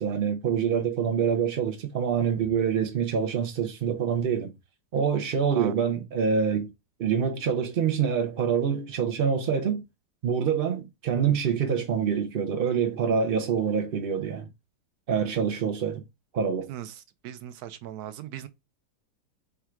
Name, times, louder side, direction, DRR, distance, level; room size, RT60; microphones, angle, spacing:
voice 1, 0.0-4.5 4.9-6.7 7.0-9.8 10.2-14.5 15.1-16.0 16.3-16.7, right 7 dB, 85° right, 0.4 m, -26 dB
voice 2, 5.5-6.0 16.7-16.9 17.2-18.5, right 11 dB, 70° right, 1.0 m, -39 dB
3.6 x 2.3 x 4.4 m
omnidirectional pair, 1.9 m